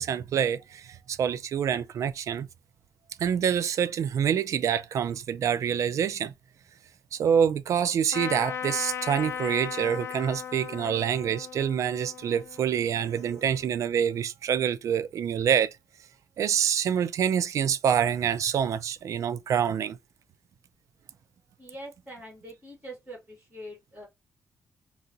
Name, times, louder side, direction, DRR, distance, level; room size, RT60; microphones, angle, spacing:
voice 1, 0.0-2.5 3.2-6.3 7.1-15.7 16.4-20.0, right 8 dB, 65° right, 0.4 m, -26 dB
Trumpet, 8.1-13.6, left 8 dB, 50° left, 0.5 m, -37 dB
voice 2, 21.6-24.1, right 1 dB, 20° right, 2.2 m, -44 dB
3.8 x 2.4 x 2.6 m
cardioid pair, 125°, 6 cm